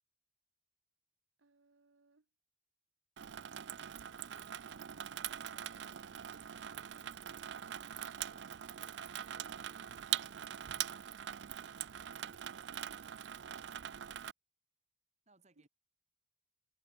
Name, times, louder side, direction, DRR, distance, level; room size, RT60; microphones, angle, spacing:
voice 1, 1.4-2.3 4.6-7.9 12.2-13.1 15.6-15.7, right 3 dB, 85° right, 1.1 m, -67 dB
Water tap faucet / Sink (filling or washing), 3.2-14.3, right 10 dB, 65° right, 0.4 m, -43 dB
voice 2, 8.3-8.7 15.3-15.7, right 2 dB, 35° right, 2.5 m, -69 dB
head